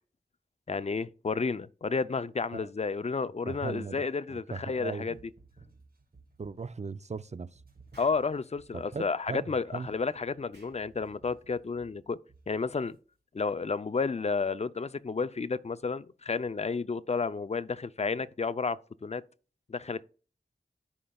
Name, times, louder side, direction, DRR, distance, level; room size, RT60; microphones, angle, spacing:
voice 1, 0.7-5.1 8.0-12.2 12.5-13.0 13.3-19.2 19.7-20.0, left 4 dB, 40° left, 0.5 m, -31 dB
voice 2, 3.4-5.2 6.4-7.6 8.7-9.5 9.7-9.9, right 4 dB, 40° right, 0.4 m, -38 dB
sound 1, 5.1-6.8 7.5-13.0, right 3 dB, 55° right, 1.8 m, -59 dB
Explosion, 7.9-8.3 10.5-10.8, right 3 dB, 75° right, 2.8 m, -59 dB
13.5 x 5.3 x 2.3 m
wide cardioid pair, 45°, 18 cm